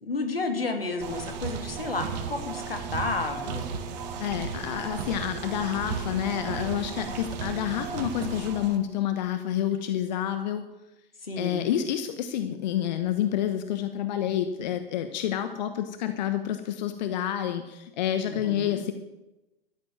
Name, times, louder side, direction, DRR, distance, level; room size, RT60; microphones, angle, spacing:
voice 1, 0.0-3.8 11.2-11.6 18.3-18.8, left 3 dB, 80° left, 5 dB, 2.7 m, -31 dB
sound 1, 1.0-8.8, right 6 dB, 45° right, 2.2 m, -35 dB
voice 2, 4.2-10.7 11.4-18.9, left 10 dB, 50° left, 9 dB, 1.1 m, -29 dB
13.0 x 10.0 x 7.7 m, 1.0 s
figure-of-eight pair, 105°, 29 cm